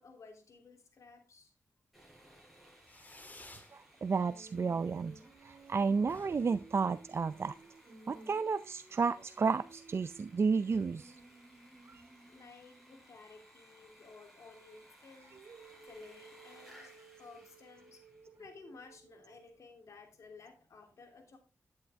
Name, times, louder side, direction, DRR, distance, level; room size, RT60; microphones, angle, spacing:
voice 1, 0.0-1.5 12.3-15.5 15.9-21.4, left 4 dB, 75° left, 4 dB, 2.9 m, -55 dB
Sawing, 1.9-18.4, equal, ahead, 7.2 m, -61 dB
Fireworks, 2.8-3.7 4.1-4.7 4.9-5.0 5.3-5.4 5.6-5.7 6.0-7.6, left 2 dB, 30° left, 2.1 m, -55 dB
voice 2, 4.0-5.1 5.4-7.5 8.1-11.1, right 5 dB, 55° right, 12 dB, 0.5 m, -32 dB
Female singing, 4.2-13.1 15.3-19.5, right 3 dB, 70° right, 2.6 m, -57 dB
10.5 x 8.6 x 3.5 m, 0.30 s
cardioid pair, 65°, 5 cm